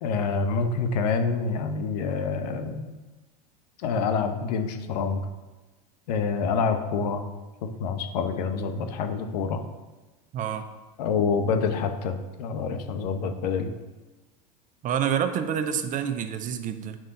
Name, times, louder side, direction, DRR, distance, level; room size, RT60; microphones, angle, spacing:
voice 1, 0.0-2.9 3.8-5.2 6.1-7.2 7.6-9.6 11.0-13.7, left 5 dB, 70° left, 7 dB, 1.0 m, -27 dB
voice 2, 10.3-10.6 14.8-17.0, right 8 dB, 40° right, 9 dB, 0.8 m, -27 dB
8.9 x 5.4 x 3.9 m, 1.1 s
hypercardioid pair, 95°, 21 cm